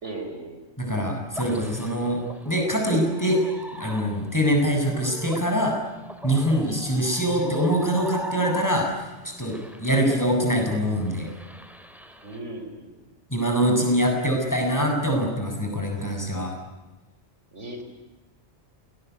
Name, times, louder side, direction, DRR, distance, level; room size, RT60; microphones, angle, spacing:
voice 1, 0.0-0.6 12.2-13.1 17.5-17.8, right 2 dB, 75° right, 6 dB, 4.8 m, -37 dB
voice 2, 0.8-2.2 2.4-3.4 3.8-5.7 6.2-9.0 9.4-11.3 13.3-16.5, equal, 15° left, 1 dB, 7.6 m, -24 dB
sound 1, 1.3-9.1 9.4-12.4, equal, ahead, 3.4 m, -39 dB
28.0 x 20.5 x 9.7 m, 1.1 s
omnidirectional pair, 1.2 m